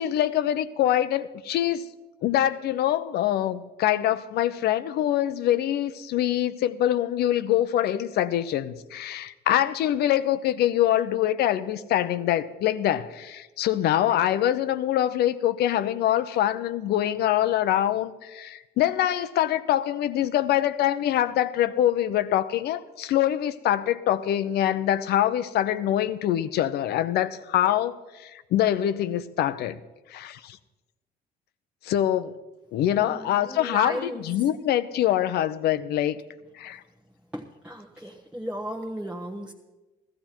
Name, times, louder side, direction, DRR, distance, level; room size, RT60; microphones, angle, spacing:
voice 1, 0.0-1.9 2.2-29.8 30.1-30.6 31.8-32.4 32.7-36.2 36.5-36.8, left 12 dB, 70° left, 0.8 m, -24 dB
voice 2, 32.9-34.3 37.3-39.5, equal, 5° right, 1.1 m, -35 dB
16.0 x 13.5 x 4.5 m
cardioid pair, 110°, 17 cm